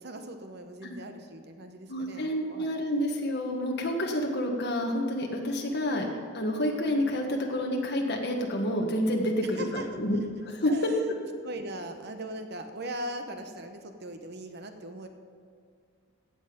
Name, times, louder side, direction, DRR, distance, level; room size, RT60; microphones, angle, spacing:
voice 1, 0.0-2.8 9.6-9.9 10.7-11.0 11.4-15.1, right 1 dB, 50° right, 6 dB, 0.9 m, -40 dB
voice 2, 1.9-6.1 6.3-10.2 10.4-10.9, left 1 dB, 50° left, 0 dB, 1.6 m, -29 dB
15.5 x 8.0 x 5.2 m, 2.3 s
head